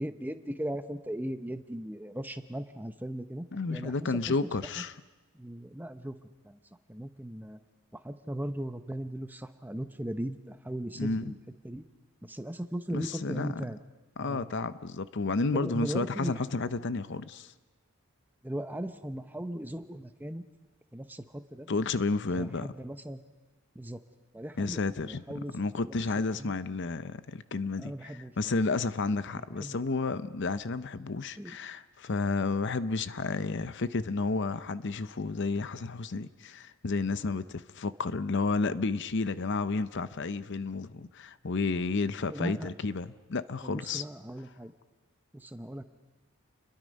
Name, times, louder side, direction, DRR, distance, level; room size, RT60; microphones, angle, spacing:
voice 1, 0.0-4.7 5.3-6.2 6.4-6.6 6.9-7.6 7.9-11.4 11.6-11.8 12.2-13.8 14.2-14.5 15.5-16.3 18.4-20.4 20.9-21.7 22.3-23.2 23.7-24.0 24.3-25.6 26.3-26.6 27.8-28.6 29.3-29.8 31.4-31.6 42.3-42.7 43.6-44.7 45.3-45.8, right 1 dB, 10° right, 0.8 m, -38 dB
voice 2, 3.5-4.9 11.0-11.3 12.9-13.5 14.2-17.5 21.7-22.7 24.6-25.2 25.5-44.0, left 3 dB, 55° left, 0.7 m, -31 dB
29.0 x 22.0 x 5.3 m
head